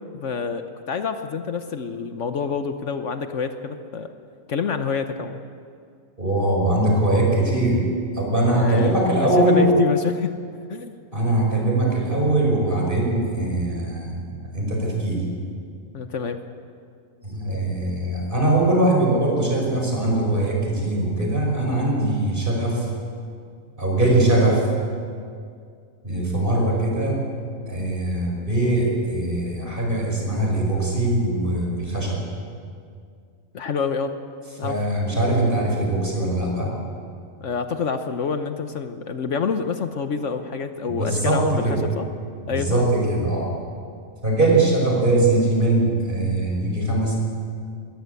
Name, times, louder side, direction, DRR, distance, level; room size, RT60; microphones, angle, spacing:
voice 1, 0.1-4.1 4.5-5.4 8.6-8.9 9.2-10.3 10.7-10.9 15.9-16.4 33.5-34.1 34.6-34.8 37.4-42.1 42.5-42.9, left 6 dB, 65° left, 8 dB, 1.3 m, -27 dB
voice 2, 6.2-7.8 8.1-9.7 11.1-15.2 17.2-22.9 23.8-24.7 26.0-27.2 27.7-32.2 34.6-36.7 40.8-41.8 42.4-43.6 44.2-47.2, right 2 dB, 40° right, -1 dB, 5.8 m, -21 dB
21.0 x 18.0 x 8.3 m, 2.3 s
omnidirectional pair, 1.4 m